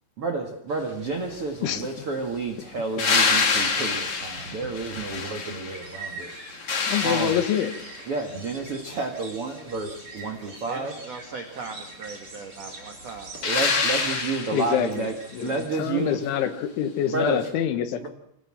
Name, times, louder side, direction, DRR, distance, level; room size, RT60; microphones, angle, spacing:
voice 1, 0.2-6.3 7.0-7.4 8.1-10.9 13.4-16.2 17.1-17.4 18.0-18.1, right 3 dB, 75° right, 4 dB, 1.3 m, -30 dB
sound 1, 0.8-15.7, right 3 dB, 25° right, 5.1 m, -45 dB
sound 2, 3.0-5.9 6.3-8.1 13.4-14.9 17.4-17.5, left 4 dB, 40° left, 2.6 m, -26 dB
voice 2, 6.9-7.7 14.5-18.1, left 9 dB, 75° left, 8 dB, 3.9 m, -26 dB
voice 3, 10.4-13.4, right 4 dB, 50° right, 4 dB, 2.1 m, -39 dB
25.5 x 18.0 x 7.6 m, 0.76 s
omnidirectional pair, 5.7 m